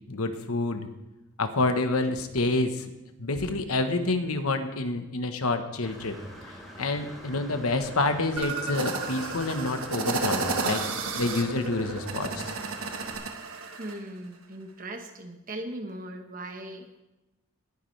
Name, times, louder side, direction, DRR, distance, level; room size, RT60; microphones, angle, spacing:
voice 1, 0.1-0.9 1.4-2.9 3.2-6.2 6.5-10.8 11.2-12.5, left 2 dB, 80° left, 7 dB, 1.1 m, -28 dB
Engine / Mechanisms, 5.8-13.2, equal, ahead, 3.5 m, -45 dB
sound 1, 8.4-14.0, right 3 dB, 70° right, 1.3 m, -32 dB
voice 2, 13.8-17.0, right 1 dB, 40° right, 5 dB, 1.2 m, -39 dB
19.5 x 9.6 x 3.3 m, 0.98 s
head